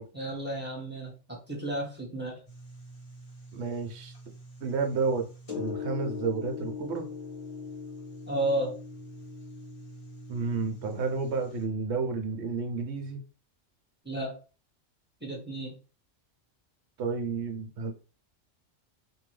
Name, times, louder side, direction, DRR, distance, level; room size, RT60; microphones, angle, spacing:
voice 1, 0.1-2.4 8.3-8.8 14.0-14.4 15.2-15.7, right 1 dB, 10° right, 0.9 m, -32 dB
sound 1, 2.5-11.7, left 4 dB, 30° left, 1.2 m, -42 dB
voice 2, 3.5-4.1 4.6-5.3 5.5-7.1 10.3-13.2 17.0-17.9, right 4 dB, 65° right, 0.9 m, -31 dB
2.7 x 2.7 x 3.1 m
omnidirectional pair, 1.3 m